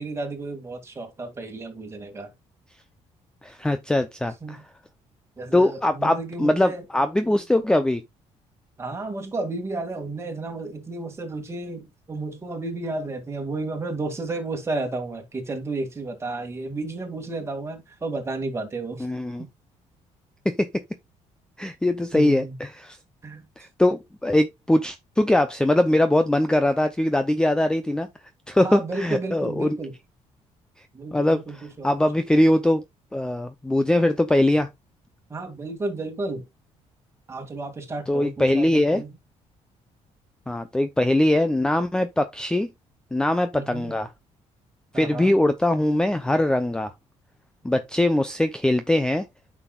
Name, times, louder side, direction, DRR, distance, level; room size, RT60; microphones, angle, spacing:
voice 1, 0.0-2.3 4.4-4.6 5.4-6.8 8.8-19.1 19.4-19.5 22.1-22.5 23.2-23.4 28.6-29.9 30.9-31.9 35.3-36.4 37.3-39.1 43.5-44.0 44.9-45.4, right 2 dB, 20° right, 2.4 m, -32 dB
voice 2, 3.4-4.6 5.5-8.0 19.0-19.4 20.5-20.7 21.6-23.0 23.6-28.1 28.5-29.8 31.1-31.4 31.8-32.8 33.1-34.7 38.1-39.0 40.5-42.7 43.1-44.1 44.9-46.9 47.6-49.2, left 1 dB, 5° left, 0.6 m, -22 dB
9.6 x 6.1 x 2.4 m
cardioid pair, 125°, 12 cm